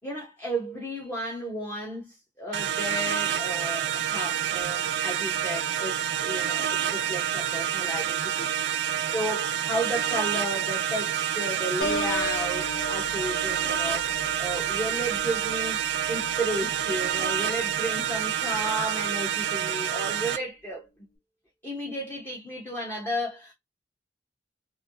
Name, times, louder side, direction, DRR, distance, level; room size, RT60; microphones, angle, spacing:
voice 1, 0.0-8.5 9.0-15.8 16.1-20.9 21.6-23.5, right 1 dB, 10° left, 0.9 m, -33 dB
sound 1, 2.5-20.4, right 9 dB, 75° right, 0.4 m, -28 dB
Piano, 11.8-17.4 17.9-18.2, left 1 dB, 70° left, 1.1 m, -37 dB
3.2 x 2.7 x 2.5 m
head